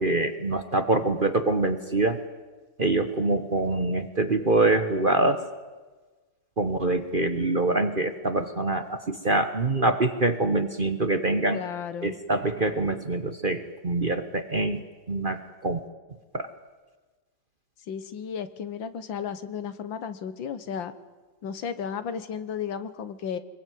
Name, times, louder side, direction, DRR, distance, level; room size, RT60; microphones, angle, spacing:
voice 1, 0.0-2.2 2.8-5.4 6.6-11.6 12.0-15.8 16.3-16.5, right 2 dB, 30° right, 9 dB, 1.1 m, -25 dB
voice 2, 11.5-12.2 17.9-20.9 21.4-23.4, left 7 dB, 75° left, 12 dB, 2.0 m, -34 dB
25.0 x 21.0 x 9.4 m, 1.3 s
omnidirectional pair, 2.1 m